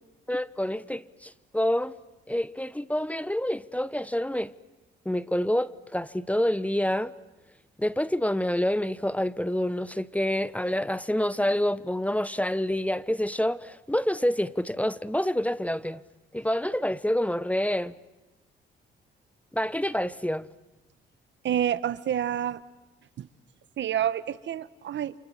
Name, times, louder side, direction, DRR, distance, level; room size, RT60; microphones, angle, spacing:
voice 1, 0.3-1.9 2.3-4.5 5.0-7.1 7.8-16.0 16.3-18.0 19.5-20.5, left 1 dB, 5° left, 0.9 m, -27 dB
voice 2, 21.4-22.6 23.2-23.3 23.8-25.1, right 10 dB, 60° right, 1.0 m, -28 dB
29.0 x 27.0 x 7.5 m
supercardioid pair, 65°, 21 cm